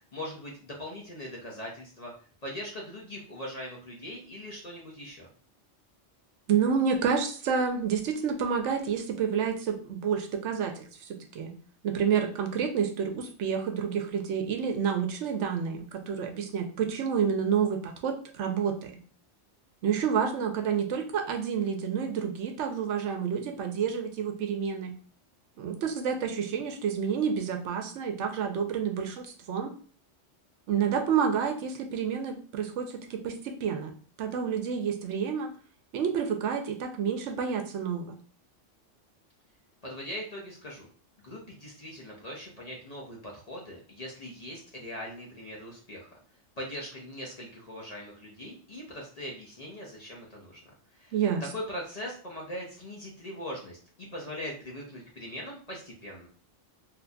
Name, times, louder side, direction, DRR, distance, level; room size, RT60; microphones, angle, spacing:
voice 1, 0.1-2.1 2.4-5.3 39.8-40.9 41.2-46.1 46.6-51.1 51.5-56.3, equal, 40° left, -2 dB, 0.6 m, -41 dB
voice 2, 6.5-10.8 11.3-11.5 11.8-19.0 19.8-24.9 25.6-29.7 30.7-33.9 34.2-35.5 35.9-38.2 51.1-51.4, right 7 dB, 75° right, 5 dB, 0.9 m, -29 dB
3.8 x 2.7 x 2.3 m, 0.43 s
omnidirectional pair, 1.2 m